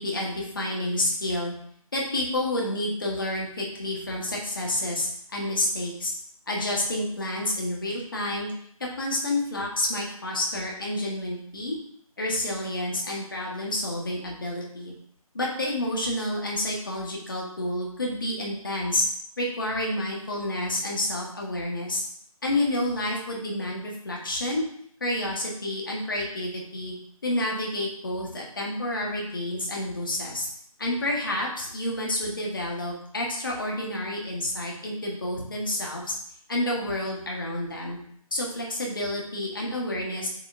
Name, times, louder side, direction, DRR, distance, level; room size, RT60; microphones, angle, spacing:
voice 1, 0.0-1.5 1.9-6.1 6.5-8.5 9.0-11.8 12.2-14.9 15.3-19.0 19.4-22.0 22.4-24.7 25.0-26.9 27.2-30.5 30.8-36.2 36.5-38.0 38.3-40.3, left 1 dB, 35° left, -2 dB, 1.5 m, -29 dB
6.8 x 5.2 x 2.7 m, 0.65 s
figure-of-eight pair, 175°, 19 cm